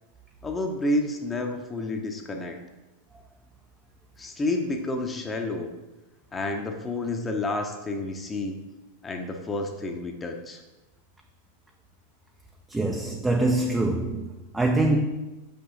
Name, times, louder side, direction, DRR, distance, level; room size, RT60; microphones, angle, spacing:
voice 1, 0.4-2.6 4.2-5.7 6.3-8.6 9.0-10.6, left 2 dB, 15° left, 0.7 m, -30 dB
voice 2, 12.7-15.1, right 2 dB, 10° right, 0.4 m, -24 dB
6.0 x 5.2 x 3.8 m
figure-of-eight pair, 90°, 0 cm